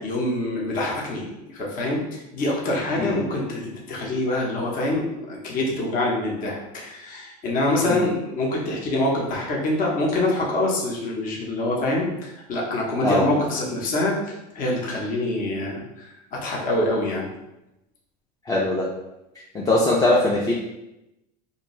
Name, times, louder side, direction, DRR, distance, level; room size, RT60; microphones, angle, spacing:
voice 1, 0.0-17.3, left 1 dB, 40° left, -2 dB, 0.8 m, -25 dB
voice 2, 18.5-18.9 19.5-20.5, left 2 dB, 15° left, -5 dB, 0.4 m, -21 dB
2.6 x 2.2 x 3.0 m, 0.92 s
supercardioid pair, 105°, 21 cm